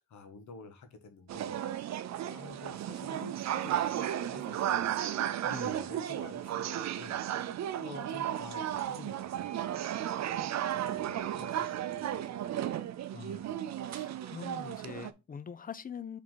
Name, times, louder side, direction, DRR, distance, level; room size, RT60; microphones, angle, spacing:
voice 1, 0.0-1.5 1.9-5.0 5.3-12.5, left 3 dB, 65° left, 1.3 m, -50 dB
sound 1, 1.3-15.1, right 11 dB, 60° right, 0.6 m, -34 dB
voice 2, 5.4-5.8 13.1-13.6 13.9-16.2, left 7 dB, 30° left, 0.4 m, -43 dB
5.0 x 3.7 x 5.6 m
wide cardioid pair, 160°, 31 cm